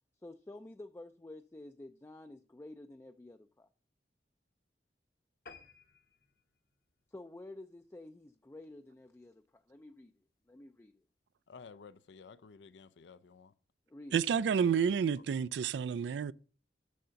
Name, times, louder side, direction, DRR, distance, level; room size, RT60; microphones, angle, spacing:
voice 1, 0.2-3.7 7.1-10.1 10.5-10.9 13.9-14.2, left 2 dB, 15° left, 0.3 m, -50 dB
sound 1, 5.5-8.2 8.7-8.9 9.3-9.4 9.7-9.8 10.1-10.2, left 4 dB, 55° left, 0.9 m, -58 dB
voice 2, 11.5-13.5 15.3-15.4, left 5 dB, 80° left, 0.5 m, -53 dB
voice 3, 14.1-16.3, right 7 dB, 75° right, 0.3 m, -30 dB
6.7 x 6.3 x 5.7 m
head